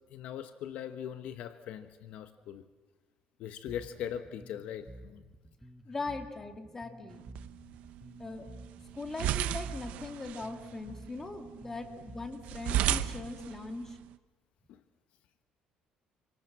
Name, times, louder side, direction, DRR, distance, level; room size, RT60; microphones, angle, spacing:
voice 1, 0.1-2.7 3.4-5.2 14.7-14.8, left 9 dB, 65° left, 10 dB, 1.2 m, -40 dB
Bass guitar, 3.7-13.2, right 1 dB, 5° right, 1.7 m, -52 dB
voice 2, 5.9-7.2 8.2-8.5 8.9-14.0, left 3 dB, 15° left, 5 dB, 2.6 m, -40 dB
sound 1, 7.1-14.1, right 11 dB, 70° right, 1.0 m, -36 dB
28.0 x 25.5 x 7.5 m, 1.2 s
cardioid pair, 140°, 2 cm